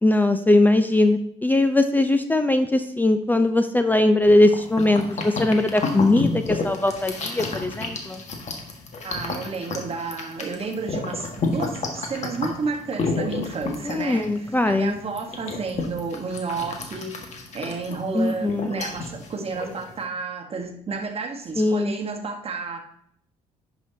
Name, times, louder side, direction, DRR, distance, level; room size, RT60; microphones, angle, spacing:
voice 1, 0.0-8.2 13.8-14.9 18.1-18.7 21.6-21.9, left 2 dB, 10° left, 8 dB, 0.5 m, -20 dB
sound 1, 4.2-20.0, left 3 dB, 50° left, 1.6 m, -31 dB
voice 2, 9.0-17.2 17.5-22.8, right 4 dB, 40° right, 4 dB, 1.3 m, -31 dB
10.5 x 6.1 x 2.8 m, 0.68 s
supercardioid pair, 75°, 15 cm